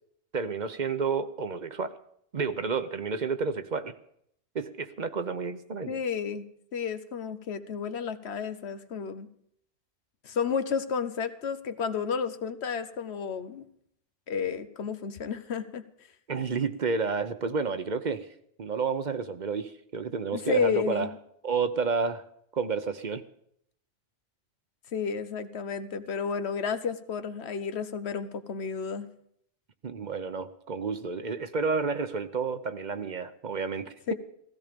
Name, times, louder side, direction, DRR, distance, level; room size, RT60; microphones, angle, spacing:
voice 1, 0.3-2.0 2.3-3.9 4.5-6.0 16.3-18.3 18.6-21.1 21.4-22.2 22.5-23.2 29.8-33.9, right 5 dB, 50° right, 11 dB, 0.9 m, -30 dB
voice 2, 5.9-6.4 6.7-9.3 10.2-13.6 14.3-15.8 20.3-21.1 24.9-29.1 34.1-34.2, left 6 dB, 85° left, 11 dB, 1.2 m, -31 dB
16.0 x 15.5 x 5.2 m, 0.71 s
omnidirectional pair, 1.1 m